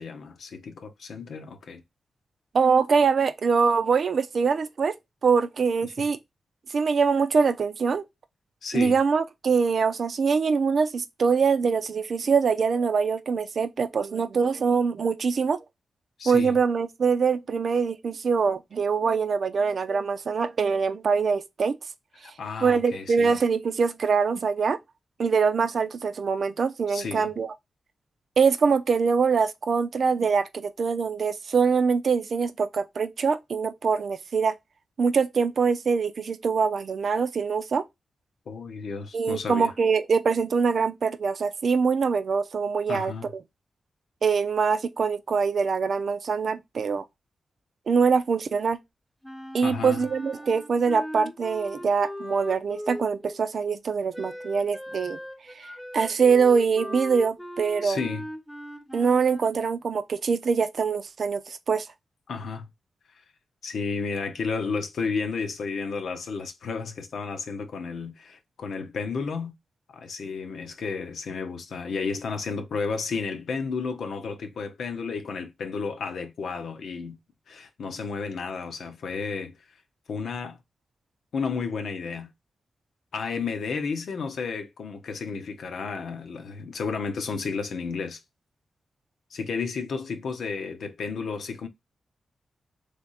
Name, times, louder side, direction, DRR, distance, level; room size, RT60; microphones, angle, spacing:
voice 1, 0.0-1.8 5.8-6.1 8.6-9.0 16.2-16.6 22.4-23.4 26.9-27.3 38.5-39.7 42.9-43.3 49.6-50.0 57.8-58.3 62.3-62.7 63.6-69.5 69.9-77.2 77.5-79.6 80.1-80.6 81.3-82.3 83.1-88.2 89.3-91.7, left 5 dB, 80° left, 0.9 m, -32 dB
voice 2, 2.5-4.9 5.2-6.2 6.7-8.0 8.7-15.6 16.3-21.8 22.6-24.8 25.2-27.5 28.4-34.5 35.0-37.8 39.1-43.1 44.2-47.0 47.9-48.8 49.5-55.2 55.6-55.7 55.9-58.0 58.9-61.9, right 5 dB, 65° right, 0.6 m, -24 dB
Wind instrument woodwind instrument, 49.2-53.4 54.1-59.5, equal, 5° left, 1.0 m, -39 dB
3.6 x 3.4 x 4.1 m
cardioid pair, 70°, 0 cm